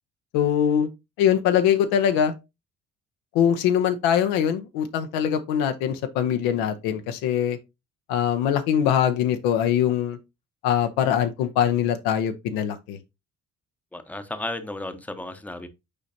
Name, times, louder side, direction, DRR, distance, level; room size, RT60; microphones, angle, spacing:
voice 1, 0.3-0.9 1.2-2.3 3.3-7.6 8.1-10.2 10.6-13.0, left 9 dB, 65° left, 0.8 m, -22 dB
voice 2, 13.9-15.7, left 2 dB, 5° left, 0.9 m, -34 dB
6.7 x 5.1 x 2.8 m
figure-of-eight pair, 45°, 38 cm